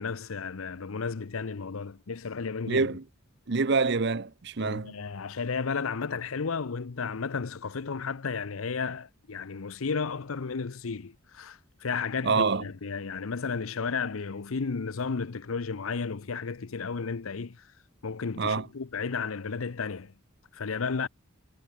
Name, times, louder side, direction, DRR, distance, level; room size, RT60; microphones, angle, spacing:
voice 1, 0.0-2.9 4.6-17.7 18.0-20.1 20.5-21.1, left 5 dB, 85° left, 0.7 m, -33 dB
voice 2, 2.7-3.0 3.5-4.9 12.2-12.6 18.4-18.7, right 4 dB, 55° right, 0.7 m, -26 dB
head